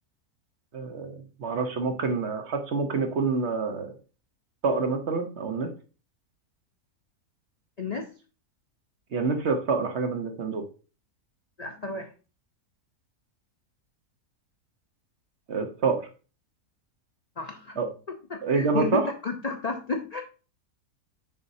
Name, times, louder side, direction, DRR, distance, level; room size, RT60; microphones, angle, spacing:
voice 1, 0.7-3.9 4.6-5.7 9.1-10.6 15.5-16.0 17.8-17.9 18.4-19.0, right 4 dB, 50° right, 5 dB, 1.0 m, -27 dB
voice 2, 7.8-8.1 11.6-12.1 17.4-17.8 18.3-20.2, left 3 dB, 60° left, 3 dB, 0.4 m, -32 dB
7.2 x 5.2 x 2.6 m, 0.34 s
omnidirectional pair, 1.6 m